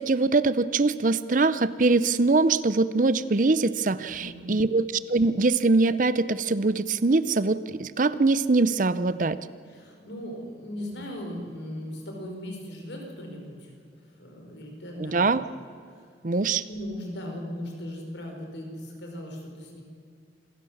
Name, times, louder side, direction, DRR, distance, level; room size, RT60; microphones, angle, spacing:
voice 1, 0.0-9.4 15.0-15.4 16.2-16.6, right 3 dB, 45° right, 15 dB, 0.6 m, -23 dB
voice 2, 4.1-4.6 9.7-13.8 14.2-15.5 16.0-16.1 16.7-19.8, left 1 dB, 80° left, 1 dB, 4.8 m, -38 dB
27.0 x 15.5 x 7.2 m, 2.3 s
head